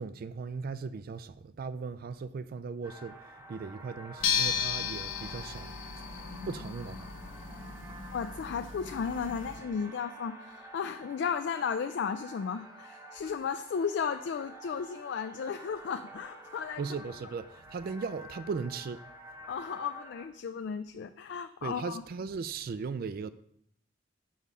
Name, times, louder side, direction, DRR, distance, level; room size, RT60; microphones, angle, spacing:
voice 1, 0.0-5.7 6.1-7.1 16.8-19.0 21.6-23.3, right 5 dB, 50° right, 0.3 m, -38 dB
sound 1, 2.8-20.3, right 1 dB, 15° right, 0.9 m, -49 dB
sound 2, 4.2-9.6, left 7 dB, 80° left, 0.9 m, -35 dB
voice 2, 8.1-16.8 19.5-22.0, left 6 dB, 60° left, 0.3 m, -34 dB
7.1 x 4.8 x 5.5 m
head